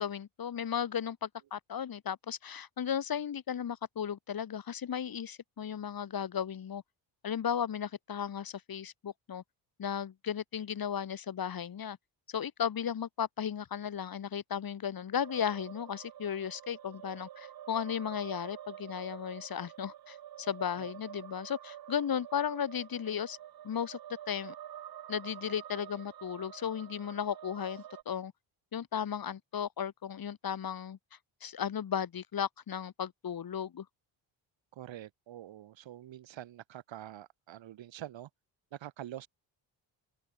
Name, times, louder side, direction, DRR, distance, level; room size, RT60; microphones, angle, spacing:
voice 1, 0.0-6.8 7.2-9.4 9.8-12.0 12.3-23.4 23.6-24.0 24.3-24.5 25.1-28.3 28.7-31.0 31.4-33.9, left 8 dB, 50° left, 2.3 m, -35 dB
sound 1, 15.2-28.0, right 11 dB, 50° right, 1.0 m, -48 dB
voice 2, 34.7-38.3 38.7-39.3, right 12 dB, 70° right, 3.1 m, -46 dB
open air
cardioid pair, 85°, 46 cm